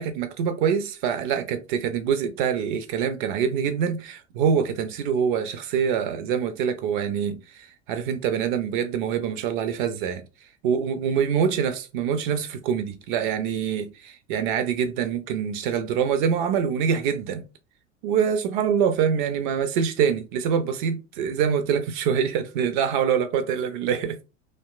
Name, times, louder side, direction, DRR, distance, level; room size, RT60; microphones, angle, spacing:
voice 1, 0.0-10.2 10.6-17.4 18.0-24.3, right 7 dB, 45° right, 0.4 m, -25 dB
2.7 x 2.1 x 2.3 m
figure-of-eight pair, 80°, 37 cm